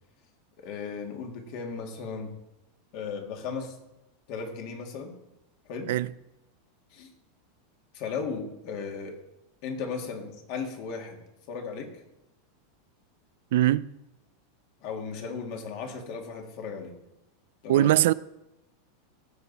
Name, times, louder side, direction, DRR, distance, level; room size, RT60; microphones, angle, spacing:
voice 1, 0.6-2.3 2.9-3.8 4.3-5.1 5.7-5.9 6.9-7.1 7.9-9.2 9.6-11.2 11.5-11.9 14.8-16.9 17.6-17.9, left 5 dB, 45° left, 2.2 m, -36 dB
voice 2, 13.5-13.9 17.7-18.1, right 14 dB, 70° right, 0.4 m, -21 dB
16.0 x 7.7 x 4.1 m
supercardioid pair, 160°, 0 cm